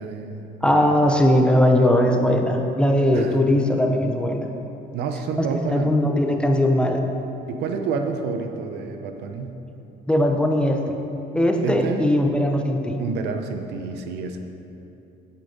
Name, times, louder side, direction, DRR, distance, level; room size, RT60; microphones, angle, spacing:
voice 1, 0.0-1.0 3.1-3.4 4.9-5.9 7.5-9.6 11.6-12.0 13.0-14.4, right 5 dB, 80° right, 5 dB, 0.8 m, -29 dB
voice 2, 0.6-4.5 5.4-7.0 10.1-11.0 11.3-13.0, left 1 dB, 5° left, 3 dB, 0.8 m, -19 dB
10.5 x 8.3 x 4.0 m, 2.9 s
cardioid pair, 110°, 17 cm